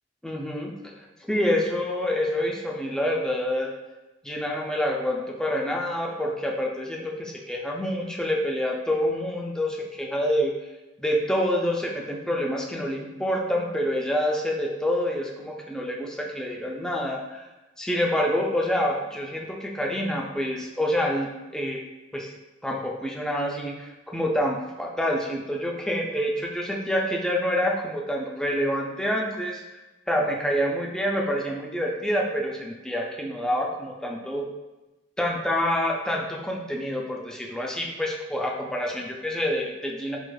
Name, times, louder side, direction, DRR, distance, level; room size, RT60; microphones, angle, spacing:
voice 1, 0.2-3.7 4.2-10.5 11.0-17.4 17.8-21.8 22.1-22.3 22.6-29.6 30.1-34.4 35.2-40.2, equal, 5° left, -1 dB, 0.3 m, -27 dB
4.6 x 2.3 x 2.2 m, 1.1 s
head